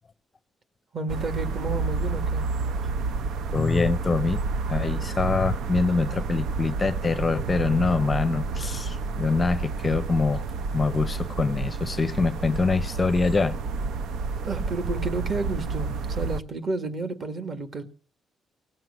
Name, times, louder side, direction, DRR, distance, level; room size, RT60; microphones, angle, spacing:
voice 1, 0.9-2.5 14.4-17.8, right 3 dB, 40° right, 1.8 m, -31 dB
sound 1, 1.1-16.4, right 4 dB, 85° right, 0.7 m, -30 dB
voice 2, 3.5-4.4 4.7-10.4 10.7-13.6, left 4 dB, 20° left, 0.6 m, -24 dB
18.5 x 7.7 x 7.1 m
cardioid pair, 170°, 0 cm